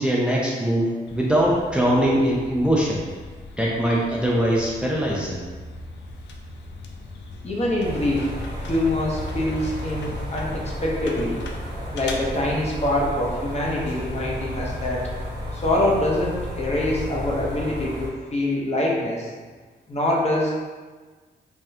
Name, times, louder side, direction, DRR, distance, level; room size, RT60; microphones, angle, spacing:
voice 1, 0.0-3.0 3.6-5.4, equal, 5° right, -5 dB, 0.5 m, -22 dB
sound 1, 1.1-15.1, left 1 dB, 80° left, 0.4 m, -39 dB
voice 2, 7.4-8.3 8.7-11.4 11.9-15.0 15.5-19.3 19.9-20.5, left 1 dB, 35° left, -3 dB, 0.8 m, -24 dB
sound 2, 7.8-18.1, left 1 dB, 65° right, 1.1 m, -33 dB
3.5 x 2.2 x 2.7 m, 1.4 s
cardioid pair, 70°, 18 cm